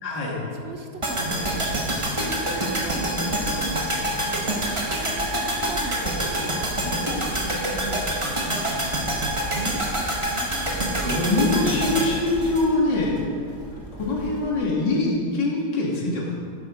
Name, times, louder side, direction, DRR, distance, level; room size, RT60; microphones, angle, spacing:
voice 1, 0.0-0.4 10.0-10.2 11.0-13.2 14.0-16.3, left 2 dB, 65° left, -3 dB, 2.8 m, -23 dB
voice 2, 0.5-1.8 2.2-5.3 5.6-6.3 6.8-6.9 7.3-9.8 10.3-11.2, right 2 dB, 40° right, 3 dB, 1.1 m, -37 dB
sound 1, 1.0-13.2 13.5-13.6, right 1 dB, 15° right, 1.5 m, -26 dB
sound 2, 9.0-14.6, equal, 15° left, 2.4 m, -41 dB
11.5 x 10.5 x 5.2 m, 2.3 s
omnidirectional pair, 2.1 m